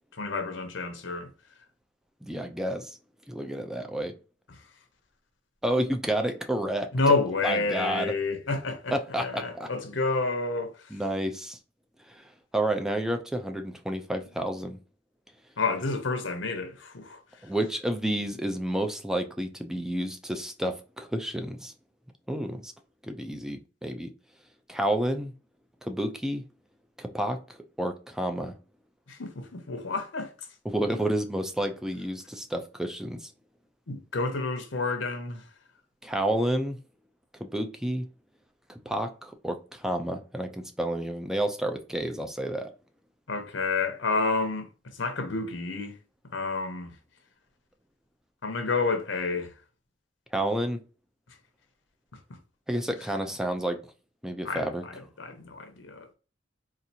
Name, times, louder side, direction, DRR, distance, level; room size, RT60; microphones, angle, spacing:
voice 1, 0.1-1.3 4.5-4.6 6.9-11.0 15.6-17.2 29.1-30.3 33.9-35.4 43.3-45.9 46.3-46.9 48.4-49.5 54.4-56.1, left 3 dB, 75° left, 0.9 m, -29 dB
voice 2, 2.2-3.0 3.3-4.1 5.6-6.9 7.4-8.1 8.9-9.7 10.9-11.6 12.1-12.2 12.5-14.8 17.4-21.7 22.3-22.7 23.0-24.1 24.7-25.3 25.8-26.4 27.0-27.4 27.8-28.6 30.6-33.3 36.0-36.8 37.4-38.1 38.7-42.7 50.3-50.8 52.7-53.8 54.2-54.8, right 1 dB, 5° right, 0.5 m, -30 dB
4.1 x 2.5 x 2.8 m
head